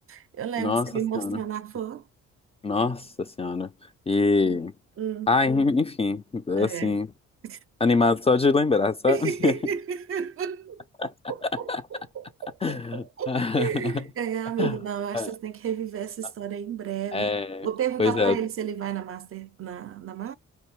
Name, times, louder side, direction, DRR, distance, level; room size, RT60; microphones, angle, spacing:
voice 1, 0.0-2.0 4.4-4.6 5.0-5.3 6.5-7.0 7.4-7.6 9.1-17.3 17.6-20.3, right 8 dB, 45° right, 0.5 m, -32 dB
voice 2, 0.6-1.4 2.6-3.7 4.1-4.7 5.3-7.1 7.8-9.5 11.0-11.1 11.7-11.8 12.6-13.9 14.6-14.8 15.1-15.3 17.1-17.7 18.0-18.4, left 3 dB, 20° left, 0.4 m, -24 dB
4.5 x 2.6 x 3.1 m
cardioid pair, 90°, 30 cm